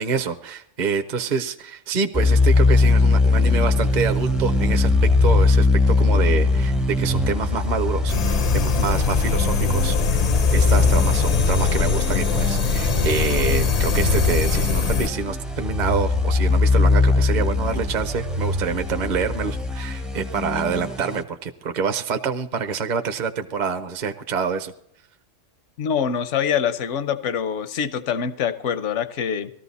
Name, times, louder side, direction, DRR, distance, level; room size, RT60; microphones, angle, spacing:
voice 1, 0.0-10.2 10.5-24.7, right 5 dB, 45° right, 8 dB, 0.8 m, -26 dB
sound 1, 2.1-21.2, left 3 dB, ahead, 0.5 m, -21 dB
sound 2, 3.4-20.2, right 1 dB, 75° right, 1.6 m, -31 dB
sound 3, 8.1-15.1, left 5 dB, 45° left, 0.5 m, -22 dB
voice 2, 25.8-29.5, left 7 dB, 80° left, 12 dB, 1.1 m, -25 dB
18.5 x 14.0 x 4.1 m, 0.73 s
omnidirectional pair, 1.2 m